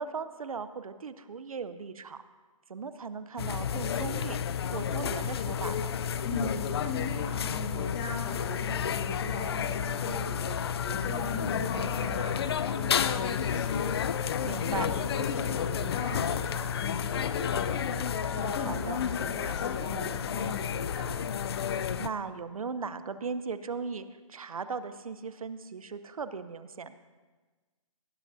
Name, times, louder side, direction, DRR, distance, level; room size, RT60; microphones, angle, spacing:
voice 1, 0.0-2.2 2.7-4.4 4.7-6.0 14.4-14.9 18.7-19.0 22.0-27.0, right 5 dB, 90° right, 12 dB, 0.8 m, -37 dB
sound 1, 3.4-22.1, left 8 dB, 45° left, 0.5 m, -31 dB
voice 2, 6.2-14.1 14.7-21.2, left 3 dB, 25° left, 0 dB, 2.4 m, -38 dB
19.5 x 14.5 x 2.7 m, 1.3 s
hypercardioid pair, 160°, 18 cm